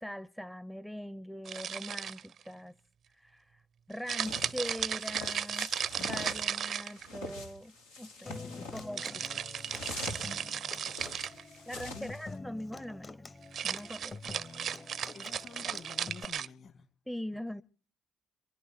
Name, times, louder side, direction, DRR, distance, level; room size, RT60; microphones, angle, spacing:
voice 1, 0.0-2.8 3.2-3.6 3.9-5.7 6.0-9.2 11.7-13.3 13.6-14.2 17.1-17.6, equal, 5° left, 0.7 m, -41 dB
sound 1, 1.4-2.4 4.1-7.3 9.0-11.4 13.4-16.5, right 8 dB, 60° right, 0.6 m, -35 dB
sound 2, 4.2-12.3, left 2 dB, 90° left, 2.6 m, -44 dB
voice 2, 8.3-8.8 11.5-12.1 15.1-16.9 17.3-17.4, left 5 dB, 50° left, 2.4 m, -50 dB
Human voice / Acoustic guitar, 8.3-16.2, left 3 dB, 30° left, 1.0 m, -47 dB
27.5 x 11.0 x 4.4 m
hypercardioid pair, 45°, 0 cm